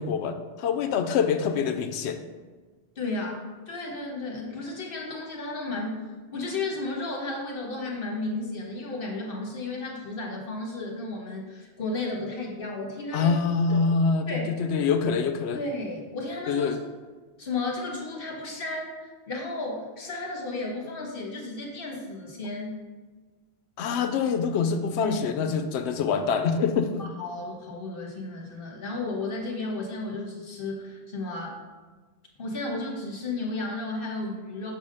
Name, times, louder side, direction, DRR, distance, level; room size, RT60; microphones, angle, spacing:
voice 1, 0.0-2.2 13.1-15.6 16.5-16.8 23.8-27.0, left 5 dB, 80° left, 8 dB, 0.8 m, -25 dB
voice 2, 2.9-6.0 6.3-13.3 13.7-13.8 14.3-14.5 15.5-16.8 17.4-22.8 25.0-25.2 27.0-31.6 32.4-34.7, left 2 dB, 60° left, -1 dB, 1.3 m, -33 dB
6.2 x 3.5 x 5.3 m, 1.4 s
omnidirectional pair, 1.1 m